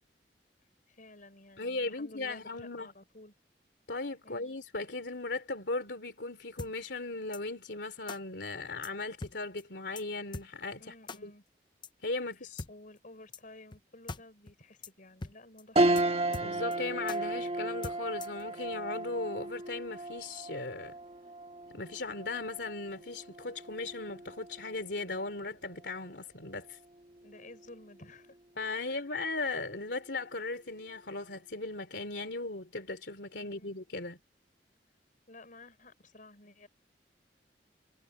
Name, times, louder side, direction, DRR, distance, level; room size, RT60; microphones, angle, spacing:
voice 1, 0.9-3.3 4.2-4.6 10.8-11.4 12.4-16.0 27.2-28.4 28.9-29.0 33.4-33.8 35.3-36.7, left 2 dB, 50° left, 5.6 m, -53 dB
voice 2, 1.6-2.9 3.9-10.9 11.2-11.3 12.0-12.6 16.4-20.9 21.7-26.8 28.6-34.2, left 3 dB, 70° left, 3.3 m, -37 dB
sound 1, 6.6-6.7 7.3-7.4 8.1-8.2 8.8-8.9 9.2-9.3 9.6-9.7 10.0-10.1 10.3-10.5 11.1-11.2 11.8-11.9 12.6-12.7 13.3-13.4 13.7-13.8 14.1-14.2 14.5-14.6 14.8-14.9 15.2-15.3 15.6-15.7 16.0-16.1 16.3-16.8 17.1-17.2 17.8-18.4, left 3 dB, 25° left, 0.7 m, -41 dB
sound 2, 15.8-25.4 25.8-25.9 27.3-27.7, right 2 dB, 35° right, 2.0 m, -34 dB
head